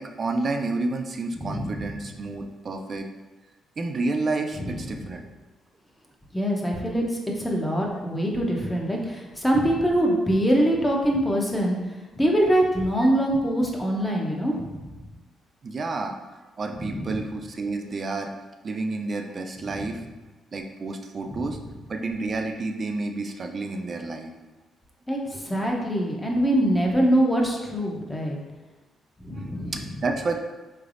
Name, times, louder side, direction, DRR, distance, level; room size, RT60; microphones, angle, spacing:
voice 1, 0.0-3.1 3.8-5.3 15.6-16.2 16.6-18.3 18.6-20.0 20.5-21.6 21.9-24.3 29.4-30.3, right 3 dB, 40° right, 4 dB, 0.4 m, -30 dB
voice 2, 1.4-1.9 4.6-5.1 6.3-14.9 16.8-17.2 19.7-19.8 21.3-21.5 25.1-28.4 29.2-29.8, right 1 dB, 10° left, -1 dB, 0.7 m, -24 dB
3.8 x 3.2 x 2.5 m, 1.2 s
cardioid pair, 90°, 0 cm